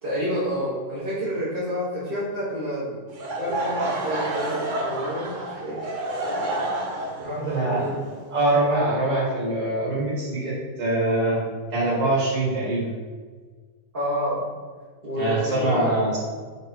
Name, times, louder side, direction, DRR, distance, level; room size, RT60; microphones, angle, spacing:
voice 1, 0.0-2.9 3.4-6.1 7.2-8.0 13.9-14.4 15.0-16.0, equal, 30° right, -12 dB, 1.8 m, -29 dB
Laughter / Crowd, 3.1-9.0, right 1 dB, 50° right, 0.6 m, -29 dB
voice 2, 7.5-7.8 8.3-10.5 10.8-11.4 11.7-12.9 15.2-16.2, right 1 dB, 75° right, -7 dB, 2.5 m, -23 dB
5.3 x 4.1 x 4.5 m, 1.5 s
omnidirectional pair, 1.9 m